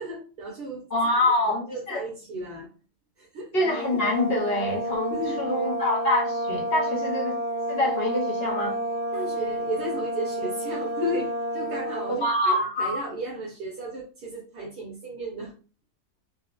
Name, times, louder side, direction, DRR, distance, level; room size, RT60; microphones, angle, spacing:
voice 1, 0.0-0.8 1.1-2.7 3.2-3.5 5.1-5.7 9.1-15.5, right 1 dB, 70° right, -4 dB, 1.4 m, -34 dB
voice 2, 0.9-2.0 3.5-7.4 7.7-8.8 12.1-13.1, left 1 dB, 55° left, 0 dB, 0.7 m, -25 dB
sound 1, 3.6-12.3, equal, 50° right, 0.7 m, -30 dB
4.1 x 2.1 x 2.3 m, 0.36 s
omnidirectional pair, 1.8 m